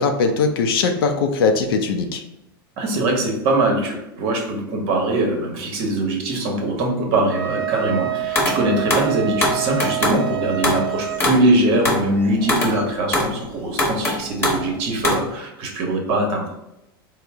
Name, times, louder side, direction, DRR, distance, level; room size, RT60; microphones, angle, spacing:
voice 1, 0.0-2.2, left 4 dB, 75° left, 5 dB, 0.4 m, -20 dB
voice 2, 2.8-16.5, right 2 dB, 55° right, 2 dB, 1.0 m, -22 dB
Wind instrument woodwind instrument, 7.3-11.2, right 15 dB, 80° right, 0.5 m, -27 dB
sound 1, 8.3-8.6 8.9-10.2 10.6-10.9 11.2-13.4 13.8-14.7 15.0-15.3, left 1 dB, 20° left, 1.1 m, -21 dB
3.8 x 2.0 x 3.4 m, 0.86 s
hypercardioid pair, 100°, 12 cm